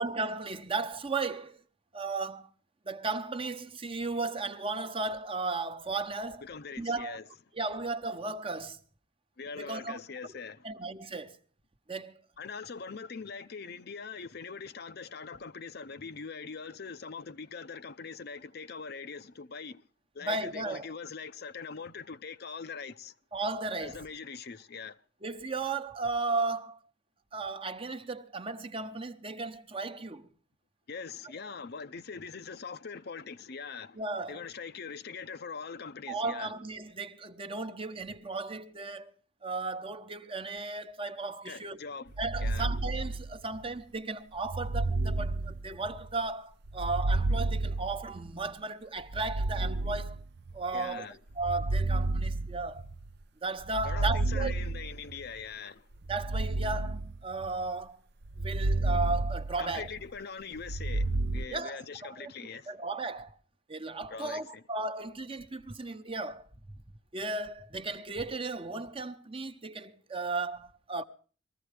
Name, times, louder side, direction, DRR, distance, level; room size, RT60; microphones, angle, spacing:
voice 1, 0.0-1.6 1.9-2.5 2.9-6.4 6.8-7.2 7.5-8.8 9.6-10.0 10.6-11.4 11.9-12.2 20.2-20.9 23.3-24.0 25.2-26.8 27.3-30.3 34.0-34.4 36.1-39.1 39.4-41.8 42.2-50.2 50.5-52.8 53.4-54.5 56.1-58.0 58.4-59.9 61.5-61.8 62.2-62.3 62.7-63.4 63.7-66.5 67.1-71.0, right 3 dB, 30° right, 0.9 m, -35 dB
voice 2, 6.4-7.3 9.4-10.7 12.4-19.8 20.1-23.2 23.8-25.0 30.9-34.0 34.3-36.5 41.4-42.1 42.4-42.7 50.7-51.2 53.8-55.9 59.6-62.7 64.1-64.6, left 5 dB, 60° left, 0.7 m, -42 dB
sound 1, 42.1-43.6 44.4-46.1 46.7-48.5 49.1-50.6 51.3-53.1 53.6-55.3 56.0-57.7 58.3-60.1 60.6-61.4, right 2 dB, 60° right, 0.6 m, -31 dB
20.5 x 14.5 x 3.3 m
head